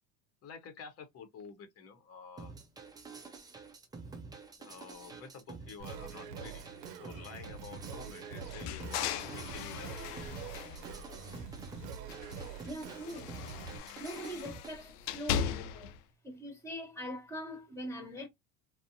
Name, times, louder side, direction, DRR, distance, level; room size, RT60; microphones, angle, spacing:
voice 1, 0.4-2.5 4.6-10.3, left 5 dB, 30° left, 0.8 m, -50 dB
sound 1, 2.4-14.7, right 4 dB, 10° right, 0.3 m, -49 dB
Singing, 5.8-13.8, right 6 dB, 85° right, 0.6 m, -45 dB
sound 2, 8.5-11.7 12.0-16.0, left 8 dB, 70° left, 0.6 m, -39 dB
voice 2, 12.6-13.4 14.0-16.0 16.2-18.3, equal, 5° left, 1.2 m, -42 dB
2.5 x 2.1 x 2.5 m
hypercardioid pair, 85°, 48 cm